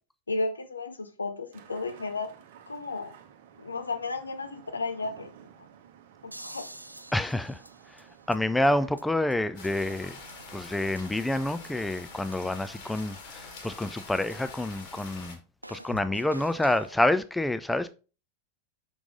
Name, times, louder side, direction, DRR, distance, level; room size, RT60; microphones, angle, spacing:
voice 1, 0.3-2.3 2.7-3.2 3.6-5.3 6.2-6.7, left 3 dB, 75° left, 0.7 m, -33 dB
sound 1, 1.5-12.2, right 9 dB, 55° right, 0.8 m, -54 dB
sound 2, 6.3-8.4 8.6-8.7 9.0-9.1 9.3-9.4 9.6-9.7 10.0-10.1 10.3-10.4 10.6-11.3 11.6-11.7 12.0-12.1 12.3-12.4 12.6-12.7 13.0-13.1 13.3-13.4 13.6-13.7 14.0-14.1 14.3-14.4 14.6-14.7 15.0-15.1 15.3-15.4 15.6-17.0, right 1 dB, 85° right, 0.3 m, -46 dB
voice 2, 7.1-7.6 7.9-10.2 10.5-15.4 15.7-17.9, left 1 dB, 5° left, 0.4 m, -28 dB
sound 3, 9.5-15.4, left 4 dB, 50° left, 2.3 m, -45 dB
6.0 x 5.3 x 3.6 m
figure-of-eight pair, 90°, 0 cm